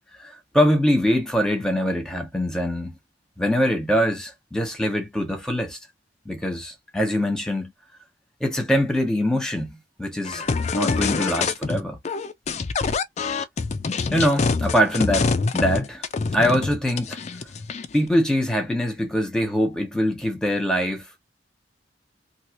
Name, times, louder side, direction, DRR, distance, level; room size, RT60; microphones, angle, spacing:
voice 1, 0.2-3.0 3.4-5.8 6.2-7.7 8.4-12.0 14.1-16.0 16.3-17.2 17.9-21.2, equal, 5° left, 1.2 m, -23 dB
sound 1, 10.3-11.8 12.1-18.0, left 4 dB, 40° left, 0.4 m, -25 dB
2.8 x 2.7 x 3.0 m
head